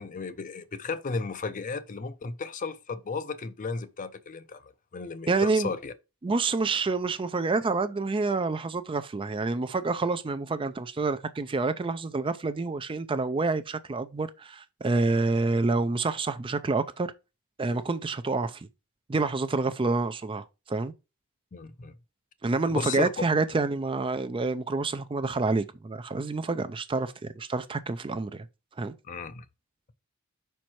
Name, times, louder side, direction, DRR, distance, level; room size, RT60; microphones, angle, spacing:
voice 1, 0.0-5.9 21.5-21.9 22.7-23.1 29.1-29.4, left 4 dB, 35° left, 0.5 m, -34 dB
voice 2, 5.3-5.7 6.2-17.1 17.6-18.7 19.1-20.9 22.4-28.5 28.8-28.9, right 3 dB, 25° right, 0.4 m, -28 dB
5.3 x 4.6 x 4.3 m
head